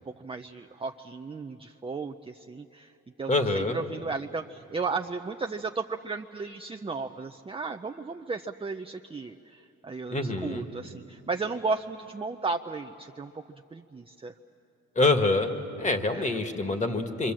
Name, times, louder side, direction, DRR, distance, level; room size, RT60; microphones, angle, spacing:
voice 1, 0.0-2.9 3.2-13.4 13.7-14.3 16.1-16.4, right 4 dB, 20° right, 5 dB, 0.6 m, -34 dB
voice 2, 3.3-3.8 10.1-10.6 15.0-15.5 15.8-17.3, left 2 dB, 25° left, 6 dB, 1.9 m, -25 dB
26.0 x 25.5 x 7.6 m, 2.7 s
cardioid pair, 90°, 30 cm